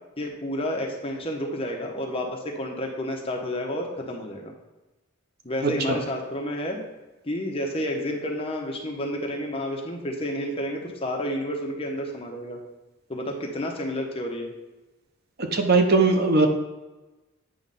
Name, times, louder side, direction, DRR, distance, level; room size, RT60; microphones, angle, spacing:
voice 1, 0.2-4.5 5.4-6.8 7.2-12.6 13.1-14.5, left 1 dB, 25° left, 1 dB, 0.9 m, -30 dB
voice 2, 5.6-6.0 15.5-16.5, right 3 dB, 50° right, 5 dB, 0.8 m, -20 dB
8.8 x 3.2 x 5.4 m, 1.1 s
head